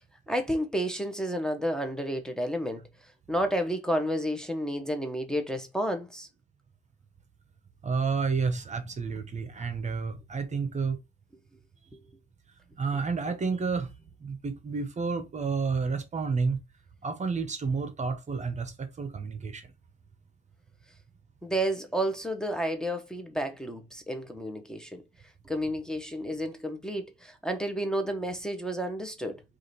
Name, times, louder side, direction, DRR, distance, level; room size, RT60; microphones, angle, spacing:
voice 1, 0.3-2.9 3.3-6.3 21.4-25.0 25.4-29.4, equal, 5° left, 0.9 m, -31 dB
voice 2, 7.8-11.0 12.8-13.9 14.2-16.6 17.0-19.7, right 5 dB, 35° right, 0.9 m, -30 dB
4.9 x 2.5 x 4.1 m
cardioid pair, 90°, 20 cm